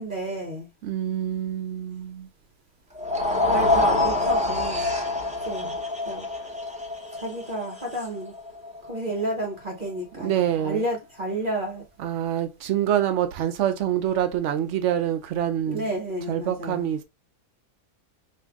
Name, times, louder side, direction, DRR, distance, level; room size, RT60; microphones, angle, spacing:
voice 1, 0.0-0.7 3.5-5.7 6.0-6.5 7.1-8.3 8.8-11.8 15.7-16.9, right 1 dB, 40° right, 0.8 m, -31 dB
voice 2, 0.8-2.3 10.2-10.8 12.0-15.8 16.3-17.0, right 10 dB, 75° right, 0.7 m, -26 dB
sound 1, 3.0-9.2, left 2 dB, 10° right, 0.5 m, -26 dB
4.7 x 2.6 x 3.5 m
omnidirectional pair, 1.8 m